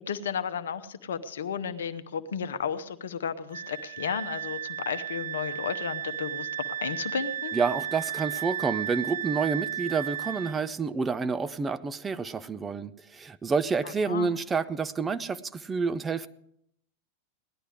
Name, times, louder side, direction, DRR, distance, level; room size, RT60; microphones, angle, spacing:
voice 1, 0.1-6.5 6.8-7.5 13.8-14.3, left 7 dB, 65° left, 11 dB, 0.9 m, -33 dB
Wind instrument woodwind instrument, 3.5-10.6, right 10 dB, 60° right, 1.7 m, -34 dB
voice 2, 7.5-16.3, right 5 dB, 15° right, 12 dB, 0.5 m, -29 dB
18.0 x 11.5 x 4.9 m, 0.74 s
figure-of-eight pair, 90°, 0 cm